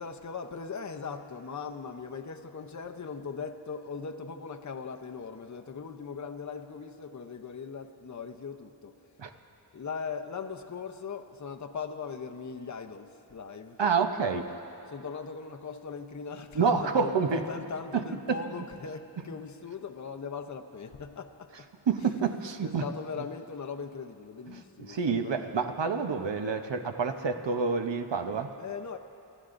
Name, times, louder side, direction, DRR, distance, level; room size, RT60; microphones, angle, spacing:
voice 1, 0.0-8.9 9.2-9.3 9.7-13.8 14.9-21.7 22.0-25.5 28.6-29.0, left 5 dB, 40° left, 5 dB, 0.7 m, -40 dB
voice 2, 13.8-14.5 16.5-17.4 17.9-18.4 21.9-22.8 24.5-24.6 24.9-28.5, right 5 dB, 70° right, 6 dB, 0.9 m, -28 dB
29.5 x 13.5 x 2.6 m, 2.7 s
wide cardioid pair, 75°, 45 cm